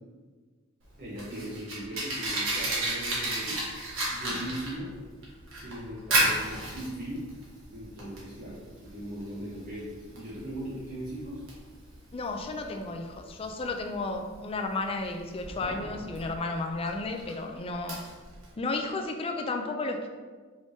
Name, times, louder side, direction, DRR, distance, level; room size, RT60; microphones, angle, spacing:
Fire, 0.8-18.5, right 1 dB, 65° right, 1.2 m, -34 dB
voice 1, 1.0-3.6 4.1-4.9 5.6-7.2 7.7-11.4, equal, 40° right, -9 dB, 1.0 m, -39 dB
voice 2, 4.0-4.4 12.1-18.0 18.6-20.1, left 3 dB, 25° left, 4 dB, 0.3 m, -33 dB
4.8 x 3.4 x 2.7 m, 1.5 s
head